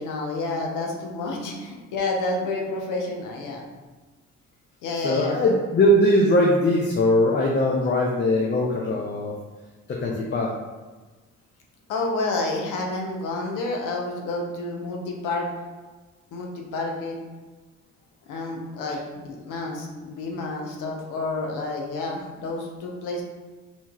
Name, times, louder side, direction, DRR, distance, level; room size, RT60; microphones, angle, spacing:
voice 1, 0.0-3.6 4.8-5.4 11.9-15.5 16.3-17.2 18.3-23.2, left 2 dB, 90° left, 0 dB, 0.8 m, -29 dB
voice 2, 4.9-9.3 9.9-10.5, left 1 dB, 40° left, -2 dB, 0.5 m, -21 dB
4.3 x 2.8 x 2.3 m, 1.3 s
cardioid pair, 90°, 30 cm